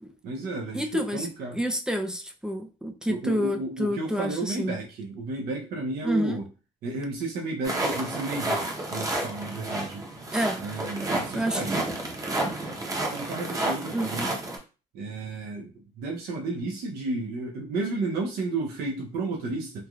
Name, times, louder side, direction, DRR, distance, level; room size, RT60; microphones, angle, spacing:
voice 1, 0.2-1.6 3.1-6.5 6.8-10.0 10.6-11.9 13.1-14.4 14.9-19.9, right 3 dB, 65° right, 0.6 m, -32 dB
voice 2, 0.7-1.3 1.5-4.8 6.0-6.4 10.3-10.6 11.3-11.6 13.9-14.1, equal, 5° right, 0.3 m, -28 dB
sound 1, 7.6-14.6, right 2 dB, 20° right, 0.8 m, -30 dB
3.2 x 2.4 x 2.3 m
cardioid pair, 110°, 17 cm